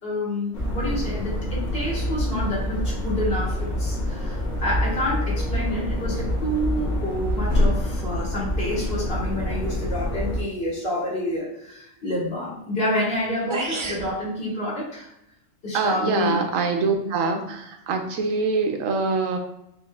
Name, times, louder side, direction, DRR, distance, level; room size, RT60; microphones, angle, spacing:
voice 1, 0.0-15.1 15.6-16.4, left 1 dB, 50° left, -6 dB, 1.9 m, -28 dB
sound 1, 0.5-10.4, left 1 dB, 70° left, 1.8 m, -26 dB
sound 2, 13.1-13.2 13.5-14.1, right 3 dB, 40° right, 0.4 m, -29 dB
voice 2, 15.7-19.4, right 4 dB, 90° right, 4 dB, 1.1 m, -24 dB
5.2 x 3.2 x 2.3 m, 0.80 s
omnidirectional pair, 1.3 m